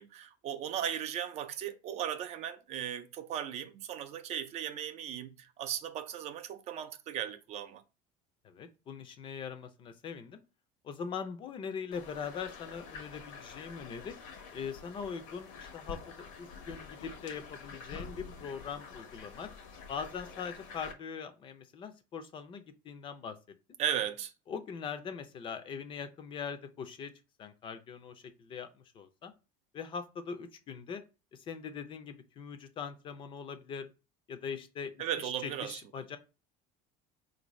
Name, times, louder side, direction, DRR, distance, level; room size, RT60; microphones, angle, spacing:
voice 1, 0.0-7.8 23.8-24.3 35.0-35.8, right 10 dB, 40° right, 0.4 m, -37 dB
voice 2, 8.4-10.4 10.8-14.1 14.5-19.5 19.9-23.3 24.5-27.1 27.4-29.3 29.7-31.0 31.3-33.9 34.3-34.9 35.2-36.2, left 6 dB, 30° left, 0.4 m, -41 dB
sound 1, 11.9-20.9, left 5 dB, 85° left, 0.9 m, -47 dB
4.1 x 2.6 x 3.0 m
cardioid pair, 155°, 17 cm